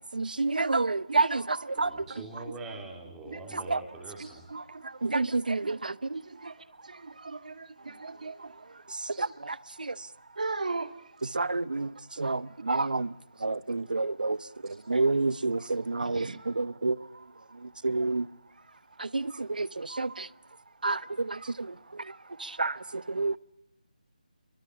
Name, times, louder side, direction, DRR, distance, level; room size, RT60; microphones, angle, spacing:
voice 1, 0.1-1.9 3.5-3.8 5.0-6.2 9.2-9.9 11.3-11.9 12.2-13.1 13.4-14.4 14.9-17.0 17.8-18.2 19.0-20.3 20.8-21.3 22.4-23.3, right 3 dB, 80° right, 1.0 m, -29 dB
voice 2, 1.1-1.6 1.9-2.0 2.3-2.4 3.3-3.4 4.5-5.3 5.6-5.8 6.1-6.5 6.8-8.5 10.4-10.9 12.2-12.3 16.0-16.4 19.3-19.4 19.9-20.2 21.3-21.5, right 3 dB, 65° right, 2.2 m, -39 dB
voice 3, 1.8-4.5 9.1-9.2 14.7-14.8 15.6-15.7, right 3 dB, 5° right, 3.5 m, -43 dB
27.0 x 24.0 x 8.5 m
figure-of-eight pair, 170°, 5 cm